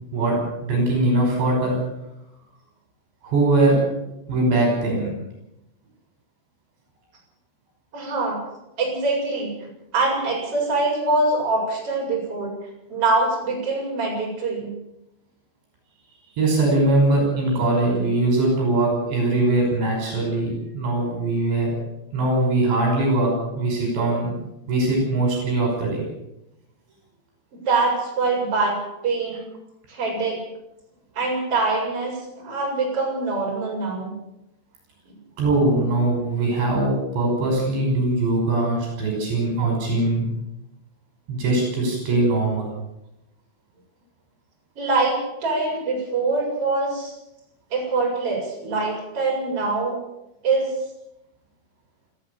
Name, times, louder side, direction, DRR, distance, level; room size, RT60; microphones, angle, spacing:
voice 1, 0.6-1.8 3.2-3.8 4.3-5.1 16.4-21.8 22.1-24.3 24.7-26.0 35.4-40.3 41.3-42.7, right 2 dB, 60° right, 1 dB, 7.6 m, -21 dB
voice 2, 7.9-8.4 8.8-9.5 9.9-12.5 12.9-14.7 27.5-29.4 29.9-30.4 31.1-34.1 44.8-47.1 47.7-50.0 50.4-50.8, right 3 dB, 25° right, -2 dB, 8.1 m, -24 dB
21.0 x 15.0 x 8.5 m, 0.88 s
omnidirectional pair, 5.8 m